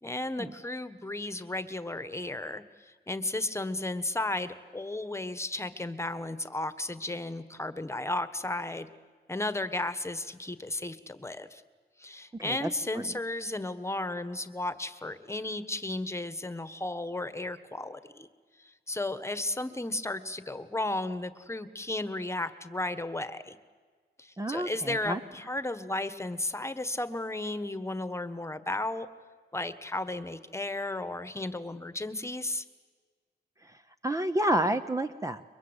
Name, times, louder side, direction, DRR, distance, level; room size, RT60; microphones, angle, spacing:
voice 1, 0.0-8.9 9.3-11.6 12.0-18.3 18.6-23.6 24.2-29.1 29.5-32.6, left 2 dB, 15° left, 12 dB, 1.4 m, -34 dB
voice 2, 12.3-12.7 12.9-13.2 24.4-25.2 33.6-35.4, right 1 dB, 15° right, 9 dB, 0.8 m, -30 dB
30.0 x 23.0 x 8.2 m, 1.5 s
wide cardioid pair, 105°, 18 cm